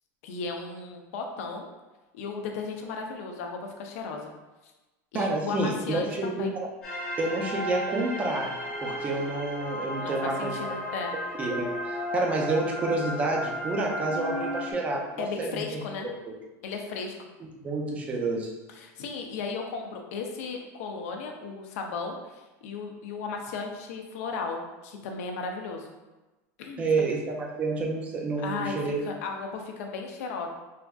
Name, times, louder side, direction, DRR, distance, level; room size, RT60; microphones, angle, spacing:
voice 1, 0.2-1.7 2.1-4.3 5.1-6.5 10.0-11.1 15.2-16.1 16.6-17.3 18.7-25.9 26.6-26.9 28.4-30.5, left 4 dB, 75° left, 3 dB, 0.5 m, -35 dB
voice 2, 5.1-6.7 7.2-10.7 11.4-15.8 17.6-18.5 26.8-29.0, right 3 dB, 15° right, 0 dB, 0.4 m, -29 dB
sound 1, 6.8-14.7, equal, 15° left, 0.7 m, -34 dB
3.3 x 2.5 x 2.3 m, 1.1 s
supercardioid pair, 165°, 8 cm